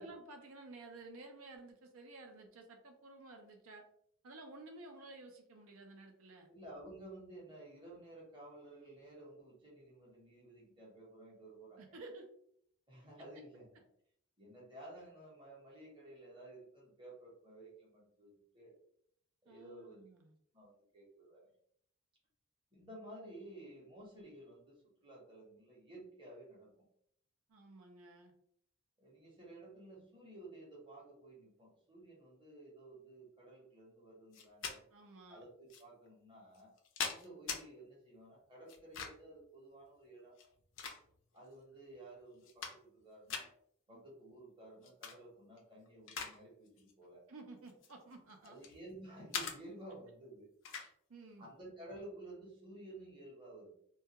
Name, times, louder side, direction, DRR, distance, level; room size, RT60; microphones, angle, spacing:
voice 1, 0.0-3.8 4.2-6.5 11.8-12.3 19.5-20.3 27.5-28.3 34.9-35.4 43.9-44.0 47.3-48.6 50.7-51.5, right 2 dB, 80° right, 3 dB, 0.6 m, -53 dB
voice 2, 6.5-11.9 12.9-13.7 14.4-18.7 19.4-20.0 20.5-21.4 22.7-26.7 29.0-34.8 35.3-36.7 37.0-40.4 41.3-43.5 43.9-47.2 48.4-50.5 51.4-53.7, right 1 dB, 20° right, -4 dB, 0.8 m, -54 dB
sound 1, 34.3-34.8 35.7-35.8 36.5-37.6 38.7-39.3 40.3-41.4 41.9-42.0 42.3-43.0 43.3-43.5 44.8-45.2 45.6-46.4 46.7-46.9 47.7-48.8 49.3-49.6 50.6-50.9, left 6 dB, 60° left, 0.4 m, -42 dB
2.3 x 2.3 x 2.8 m, 0.67 s
head